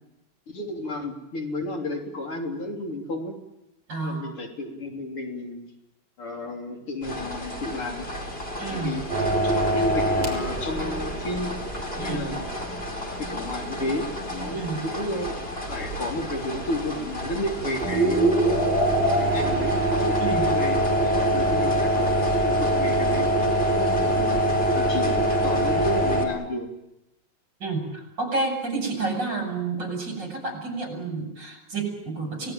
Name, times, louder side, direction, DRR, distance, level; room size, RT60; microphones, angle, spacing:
voice 1, 0.5-3.4 4.0-5.6 6.2-8.1 8.7-9.1 9.3-11.5 12.0-12.5 13.1-15.3 15.7-18.4 19.2-22.2 22.4-24.4 24.7-26.7, left 1 dB, 80° left, 1 dB, 4.4 m, -32 dB
voice 2, 3.9-4.3 8.6-9.0 12.0-12.2 14.5-14.9 20.2-20.5 27.6-32.5, right 3 dB, 55° right, 3 dB, 7.3 m, -30 dB
sound 1, 7.0-26.3, left 1 dB, 25° left, 4.1 m, -34 dB
sound 2, 9.1-15.1 15.4-15.5 17.0-17.3 17.8-26.2, right 1 dB, 25° right, 5.8 m, -24 dB
29.0 x 18.5 x 9.1 m, 0.93 s
omnidirectional pair, 2.4 m